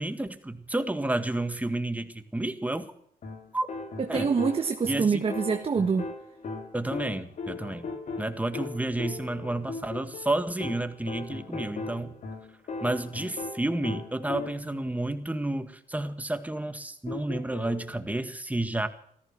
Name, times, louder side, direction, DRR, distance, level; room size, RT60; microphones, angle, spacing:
voice 1, 0.0-2.9 3.5-3.7 4.1-4.3 4.8-5.2 6.7-7.9 8.2-12.2 12.8-18.9, right 2 dB, 10° right, 9 dB, 1.9 m, -31 dB
sound 1, 3.2-14.8 17.1-17.9, left 4 dB, 55° left, 2.7 m, -38 dB
voice 2, 4.0-6.1, right 5 dB, 40° right, 6 dB, 1.4 m, -25 dB
14.5 x 14.0 x 6.3 m, 0.64 s
cardioid pair, 80°, 15 cm